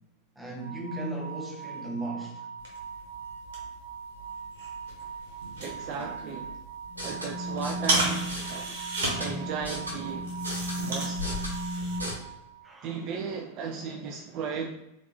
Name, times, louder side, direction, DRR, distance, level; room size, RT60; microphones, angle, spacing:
voice 1, 0.4-2.5 12.6-13.0, right 2 dB, 5° right, 0.9 m, -36 dB
sound 1, 0.6-12.8, right 6 dB, 75° left, 0.5 m, -42 dB
sound 2, 2.6-12.0, right 2 dB, 60° right, 1.1 m, -35 dB
voice 2, 5.6-6.6 7.0-8.8 9.2-10.3 10.9-11.3 12.8-14.7, right 5 dB, 40° right, 0.3 m, -35 dB
sound 3, 6.9-12.1, left 1 dB, 80° right, 0.9 m, -35 dB
3.5 x 2.8 x 2.9 m
figure-of-eight pair, 90°, 0 cm